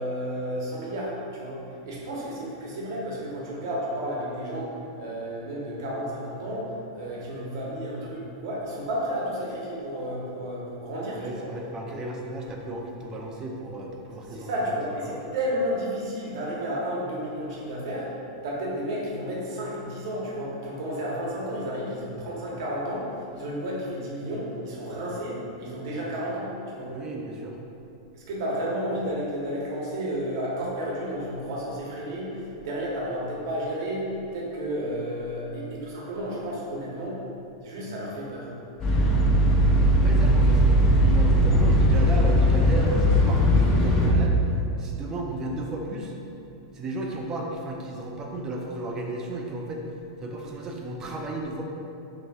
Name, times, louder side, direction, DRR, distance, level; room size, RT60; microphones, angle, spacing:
voice 1, 0.0-1.6 1.8-11.5 11.9-12.0 14.3-18.1 18.4-26.9 28.1-37.2 37.6-38.5, equal, 65° right, -4 dB, 1.0 m, -32 dB
voice 2, 11.1-14.5 15.0-15.3 26.9-27.6 40.0-44.4 44.8-46.1 46.7-49.9 50.2-51.6, right 2 dB, 25° right, 0 dB, 0.5 m, -34 dB
sound 1, 38.8-44.1, equal, 30° left, 0.7 m, -19 dB
5.2 x 3.0 x 2.4 m, 2.7 s
hypercardioid pair, 120°, 2 cm